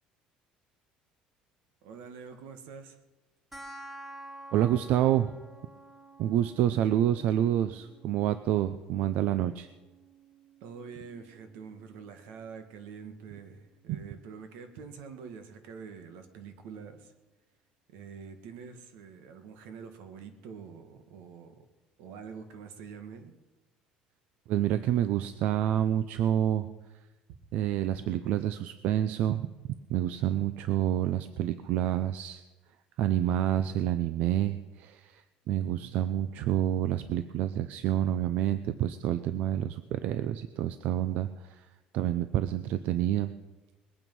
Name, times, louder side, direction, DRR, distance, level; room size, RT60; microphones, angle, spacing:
voice 1, 1.8-3.0 10.6-17.1 17.9-21.6 22.0-23.3, right 6 dB, 80° right, 8 dB, 1.7 m, -46 dB
sound 1, 3.5-14.5, right 1 dB, 5° right, 1.2 m, -52 dB
voice 2, 4.5-5.3 6.2-9.7 24.5-26.7 27.5-29.4 29.9-32.4 33.0-35.2 35.5-41.6 41.9-43.3, right 11 dB, 60° right, 12 dB, 0.6 m, -28 dB
21.0 x 8.9 x 5.4 m, 1.1 s
cardioid pair, 150°, 3 cm